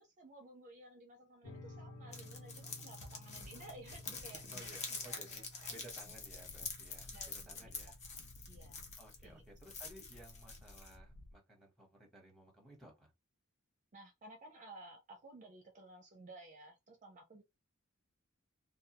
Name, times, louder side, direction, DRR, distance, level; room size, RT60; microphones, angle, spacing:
voice 1, 0.0-6.1 7.1-7.7 8.0-8.8 9.2-9.4 13.9-17.4, right 2 dB, 35° right, 0.5 m, -56 dB
sound 1, 1.4-10.4, left 1 dB, 65° left, 0.9 m, -56 dB
sound 2, 2.1-9.2 9.6-11.0, left 4 dB, 30° left, 0.6 m, -47 dB
voice 2, 4.5-8.0 9.0-13.1, right 1 dB, ahead, 1.0 m, -57 dB
sound 3, 6.1-11.4, left 1 dB, 85° left, 0.5 m, -58 dB
2.3 x 2.2 x 2.8 m
head